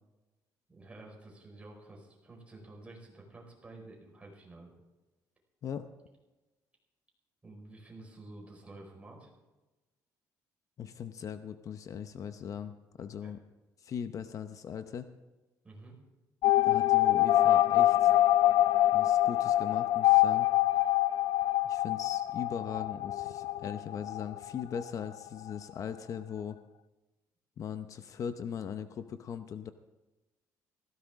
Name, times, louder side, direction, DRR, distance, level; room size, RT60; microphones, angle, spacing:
voice 1, 0.7-4.7 7.4-9.3 13.2-13.3 15.6-16.0, right 2 dB, 15° right, -1 dB, 4.9 m, -50 dB
voice 2, 10.8-13.4 13.8-15.1 16.6-18.1 18.9-20.5 21.6-26.6 27.6-29.7, left 8 dB, 50° left, 10 dB, 0.7 m, -39 dB
sound 1, 16.4-24.9 25.2-25.3 25.5-25.6, left 14 dB, 75° left, 0.4 m, -25 dB
18.0 x 15.5 x 3.6 m, 1.1 s
cardioid pair, 120°, 7 cm